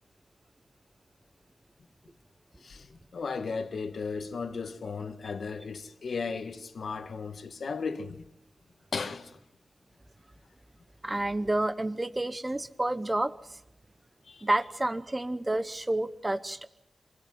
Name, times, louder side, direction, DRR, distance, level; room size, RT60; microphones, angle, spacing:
voice 1, 2.6-8.2 8.9-9.4 14.3-14.5, left 5 dB, 70° left, 1.7 m, -35 dB
voice 2, 11.0-13.6 14.4-16.7, right 1 dB, 20° right, 0.9 m, -29 dB
26.5 x 17.0 x 9.5 m
wide cardioid pair, 95°, 0 cm